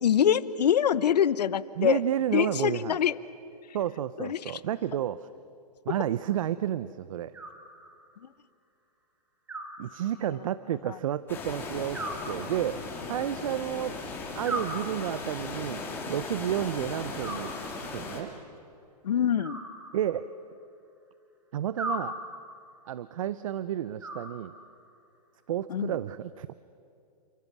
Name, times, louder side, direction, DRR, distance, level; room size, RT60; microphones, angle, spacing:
voice 1, 0.0-2.0 2.3-3.1 4.2-4.4 19.0-19.6 25.7-25.9, left 9 dB, 75° left, 16 dB, 1.0 m, -24 dB
voice 2, 1.8-3.0 3.7-5.3 5.9-7.3 9.8-14.0 14.4-15.8 16.1-17.5 17.9-18.3 19.9-20.3 21.5-22.2 22.9-24.5 25.5-26.6, right 11 dB, 55° right, 16 dB, 0.7 m, -31 dB
Animal, 7.3-8.2 9.5-10.5 11.9-13.0 14.4-15.5 17.2-18.1 19.4-20.5 21.8-22.7 24.0-24.9, right 1 dB, 10° right, 1.9 m, -39 dB
sound 1, 11.3-18.2, left 3 dB, 10° left, 3.5 m, -37 dB
29.0 x 25.5 x 7.3 m, 2.6 s
hypercardioid pair, 160°, 21 cm